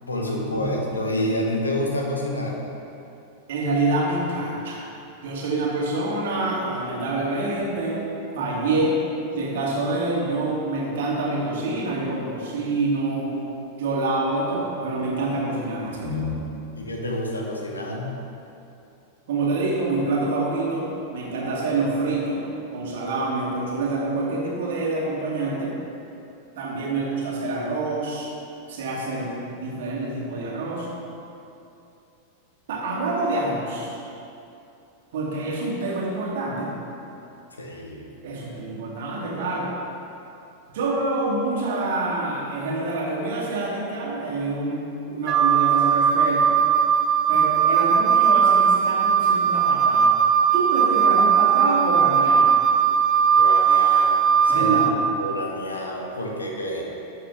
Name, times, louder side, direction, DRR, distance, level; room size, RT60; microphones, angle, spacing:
voice 1, 0.0-2.6 16.7-18.2 37.6-38.1 53.3-54.9 55.2-56.9, left 1 dB, 75° left, 0 dB, 1.2 m, -28 dB
voice 2, 3.5-4.8 5.2-8.0 8.3-9.0 9.4-13.4 13.8-16.3 19.3-22.5 22.7-25.8 26.6-28.3 28.7-30.9 32.7-34.0 35.1-36.7 38.2-39.7 40.7-46.6 47.3-50.1 50.5-52.6 54.5-54.9, right 2 dB, 55° right, -2 dB, 1.8 m, -26 dB
Wind instrument woodwind instrument, 45.3-54.9, right 7 dB, 30° right, 0.4 m, -18 dB
12.0 x 6.5 x 3.5 m, 2.8 s
figure-of-eight pair, 90°, 0 cm